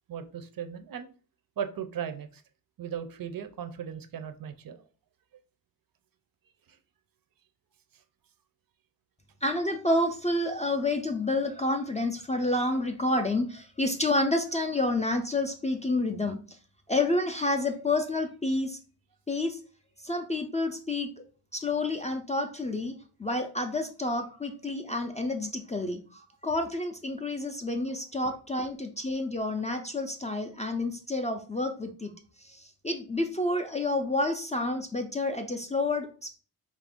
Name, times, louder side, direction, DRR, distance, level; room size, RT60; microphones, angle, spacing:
voice 1, 0.1-1.1 1.6-2.4 2.8-4.8 6.7-6.8 28.2-28.3, right 8 dB, 60° right, 10 dB, 0.5 m, -37 dB
voice 2, 9.4-16.6 16.9-18.8 19.3-19.6 20.0-21.1 21.5-22.9 23.2-32.1 32.4-36.4, left 2 dB, 20° left, 4 dB, 0.3 m, -29 dB
4.1 x 2.4 x 3.5 m, 0.39 s
wide cardioid pair, 130°, 40 cm